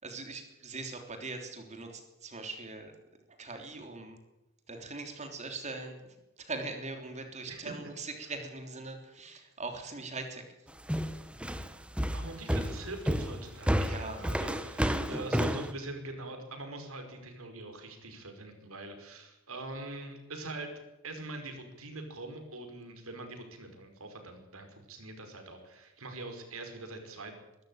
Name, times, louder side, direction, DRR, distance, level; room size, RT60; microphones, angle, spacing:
voice 1, 0.0-2.9 3.4-4.2 4.7-10.5 13.8-14.3 14.8-15.3, right 3 dB, 35° right, 5 dB, 3.4 m, -41 dB
sound 1, 10.9-15.7, equal, 5° right, 1.1 m, -30 dB
voice 2, 11.4-11.8 12.1-27.4, right 2 dB, 80° right, 5 dB, 5.3 m, -43 dB
23.0 x 13.5 x 9.0 m, 0.99 s
head